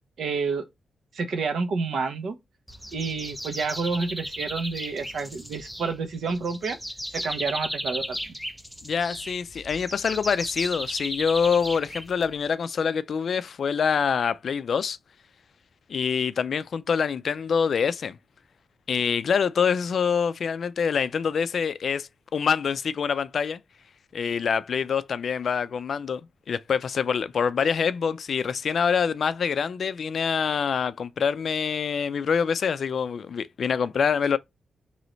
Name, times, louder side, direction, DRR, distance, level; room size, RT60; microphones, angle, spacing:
voice 1, 0.2-0.6 1.1-2.4 2.9-6.8 7.1-8.3, right 4 dB, 65° right, 0.9 m, -29 dB
sound 1, 2.7-12.5, equal, ahead, 0.5 m, -36 dB
voice 2, 8.8-15.0 15.9-18.2 18.9-23.6 24.1-26.2 26.5-34.4, left 6 dB, 55° left, 0.3 m, -25 dB
3.1 x 3.0 x 3.9 m
wide cardioid pair, 145°, 0 cm